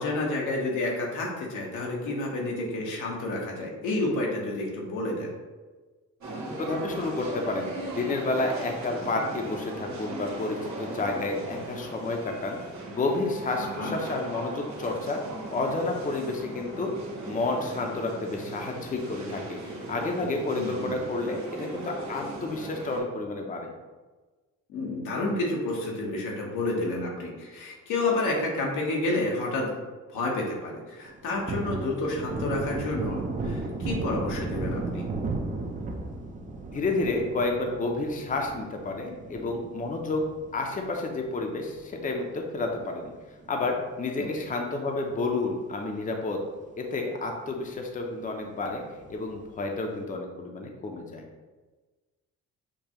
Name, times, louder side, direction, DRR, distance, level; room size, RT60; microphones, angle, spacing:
voice 1, 0.0-5.3 13.6-14.0 20.5-21.0 24.7-29.7 30.1-35.1 44.2-44.3, left 2 dB, 90° left, -2 dB, 1.1 m, -30 dB
sound 1, 6.2-23.0, right 1 dB, 65° right, 1.4 m, -38 dB
voice 2, 6.6-12.6 12.9-15.2 15.5-16.9 17.3-23.7 36.7-40.3 40.5-43.1 43.5-46.4 46.8-48.8 49.1-51.3, left 2 dB, 25° left, 2 dB, 0.6 m, -30 dB
Thunder, 31.1-41.8 42.2-42.3 42.6-44.1 44.4-44.6 44.9-45.7 46.1-46.2 46.6-46.7 49.0-49.6, right 3 dB, 25° right, 0.5 m, -35 dB
6.7 x 2.4 x 2.9 m, 1.3 s
cardioid pair, 90°, 30 cm